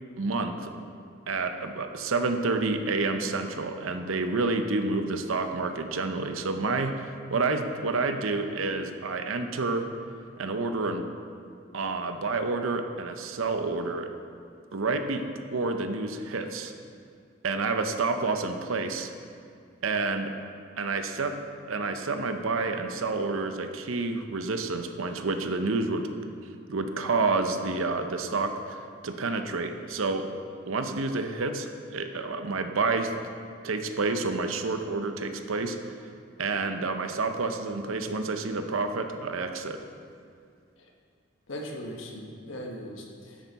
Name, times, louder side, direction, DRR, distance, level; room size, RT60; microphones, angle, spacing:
voice 1, 0.2-0.7 1.3-9.9 10.4-11.1 11.7-14.1 14.7-15.2 15.5-16.7 17.4-19.1 19.8-20.3 20.8-21.3 21.7-26.1 26.7-30.3 30.7-33.1 33.6-35.9 36.4-39.8, right 3 dB, 80° right, 7 dB, 0.7 m, -29 dB
voice 2, 41.5-43.4, equal, 70° left, 0 dB, 1.3 m, -39 dB
10.5 x 8.1 x 4.1 m, 2.3 s
head